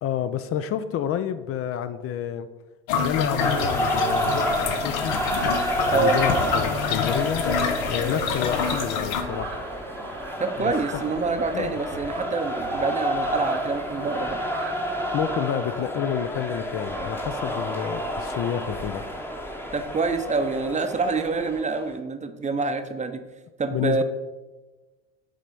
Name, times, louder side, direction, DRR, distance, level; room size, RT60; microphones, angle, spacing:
voice 1, 0.0-2.5 2.9-5.2 5.9-7.4 7.9-9.6 10.6-11.2 11.5-11.7 15.1-19.0 23.7-24.0, left 9 dB, 50° left, 11 dB, 0.5 m, -29 dB
sound 1, 2.9-9.2, left 6 dB, 75° left, 0.8 m, -27 dB
sound 2, 3.4-21.9, equal, 5° left, 0.9 m, -29 dB
sound 3, 8.0-15.2, right 6 dB, 55° right, 1.1 m, -41 dB
voice 2, 10.4-14.4 19.7-23.2 23.6-24.0, right 4 dB, 25° right, 8 dB, 0.7 m, -26 dB
7.4 x 3.3 x 5.3 m, 1.2 s
supercardioid pair, 85°, 30 cm